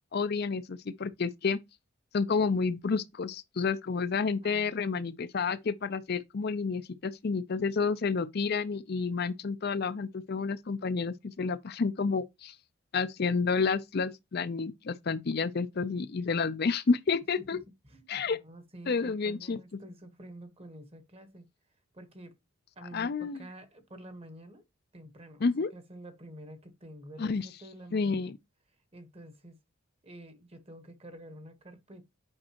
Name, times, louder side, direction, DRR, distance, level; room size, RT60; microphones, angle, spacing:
voice 1, 0.1-1.6 2.1-12.5 12.9-17.6 18.1-18.4 18.9-19.6 22.9-23.4 25.4-25.7 27.2-27.5 27.9-28.3, left 4 dB, 45° left, 0.5 m, -30 dB
voice 2, 4.4-5.2 17.4-17.5 17.8-21.5 21.9-22.4 22.8-24.6 24.9-28.3 28.9-29.6 30.0-32.0, right 1 dB, 25° right, 1.2 m, -49 dB
8.7 x 5.3 x 2.9 m
head